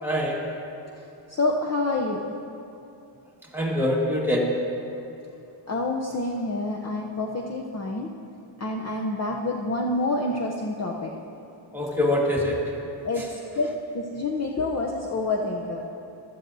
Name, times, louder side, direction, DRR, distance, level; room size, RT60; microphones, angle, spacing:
voice 1, 0.0-0.5 3.5-4.5 11.7-12.6 13.2-13.3, left 1 dB, 5° right, -4 dB, 1.7 m, -24 dB
voice 2, 1.0-2.2 5.7-8.1 8.6-11.1 13.0-15.9, left 2 dB, 35° left, 0 dB, 0.6 m, -28 dB
15.0 x 12.5 x 2.7 m, 2.8 s
wide cardioid pair, 150°, 48 cm